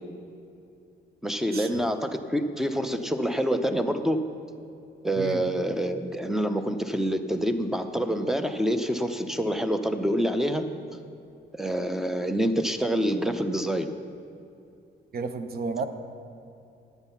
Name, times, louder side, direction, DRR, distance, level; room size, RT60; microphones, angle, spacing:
voice 1, 1.2-4.2 5.0-10.7 11.6-13.9, equal, ahead, 8 dB, 0.7 m, -26 dB
voice 2, 15.1-15.8, right 4 dB, 50° right, 9 dB, 0.9 m, -32 dB
10.5 x 8.1 x 5.7 m, 2.7 s
cardioid pair, 90°, 20 cm